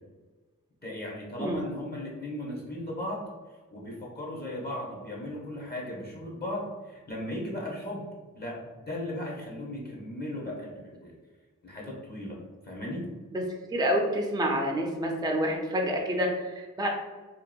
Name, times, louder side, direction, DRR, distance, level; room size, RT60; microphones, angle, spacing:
voice 1, 0.8-3.3 3.7-8.1 8.3-11.2 11.6-12.4 12.6-13.1, left 1 dB, 30° left, -4 dB, 0.7 m, -36 dB
voice 2, 13.7-16.9, equal, 15° right, 1 dB, 0.4 m, -28 dB
2.7 x 2.3 x 2.2 m, 1.3 s
wide cardioid pair, 50°, 33 cm